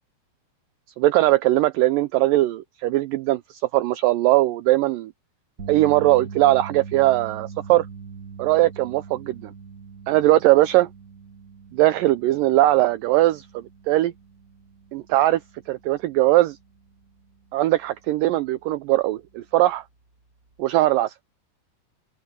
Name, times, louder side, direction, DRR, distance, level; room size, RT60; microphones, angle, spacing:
voice 1, 1.0-5.1 5.7-7.9 8.4-9.5 10.1-10.9 11.7-14.1 14.9-15.4 15.7-16.6 17.5-19.8 20.6-21.1, right 16 dB, 90° right, 1.9 m, -20 dB
sound 1, 5.6-17.8 18.2-18.4 20.6-20.7, right 6 dB, 60° right, 0.9 m, -42 dB
open air
omnidirectional pair, 4.6 m